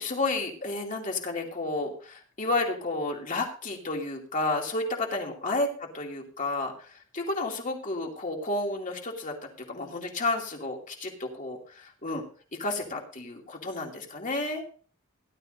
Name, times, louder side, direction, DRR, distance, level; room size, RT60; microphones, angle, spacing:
voice 1, 0.0-12.2 12.6-14.6, left 2 dB, 40° left, 1 dB, 2.6 m, -31 dB
17.5 x 12.0 x 2.7 m, 0.42 s
head